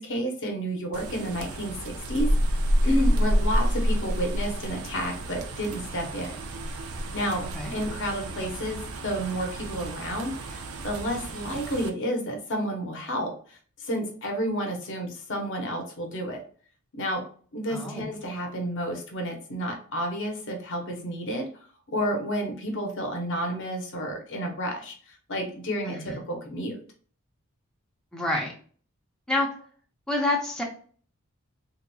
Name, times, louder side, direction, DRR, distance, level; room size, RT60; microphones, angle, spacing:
voice 1, 0.0-2.3 2.8-6.3 7.1-7.4 7.7-13.3 13.8-16.4 16.9-17.2 17.5-21.5 21.9-24.9 25.3-26.8, equal, 55° left, 3 dB, 0.9 m, -30 dB
sound 1, 0.9-11.9, equal, 75° right, 0.5 m, -29 dB
voice 2, 17.7-18.1 25.8-26.2 28.1-28.5 29.3-29.5 30.1-30.6, left 2 dB, 5° left, -2 dB, 0.6 m, -28 dB
3.6 x 2.9 x 2.2 m, 0.44 s
head